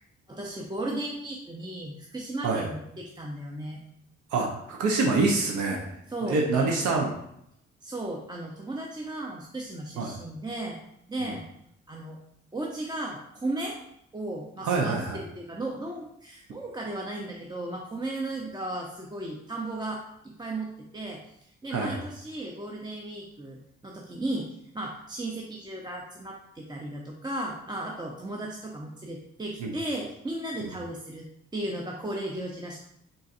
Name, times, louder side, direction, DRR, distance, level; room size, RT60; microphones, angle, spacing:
voice 1, 0.3-3.8 6.1-6.8 7.8-10.8 11.1-11.4 11.9-12.2 12.5-13.8 14.1-31.3 31.5-32.8, right 1 dB, 15° right, -1 dB, 0.5 m, -35 dB
voice 2, 4.3-5.9 6.2-7.1 10.0-10.2 11.2-11.3 14.6-15.2 21.7-22.0 29.6-29.7, right 3 dB, 80° right, 0 dB, 0.7 m, -26 dB
3.9 x 3.8 x 2.5 m, 0.75 s
supercardioid pair, 60°, 29 cm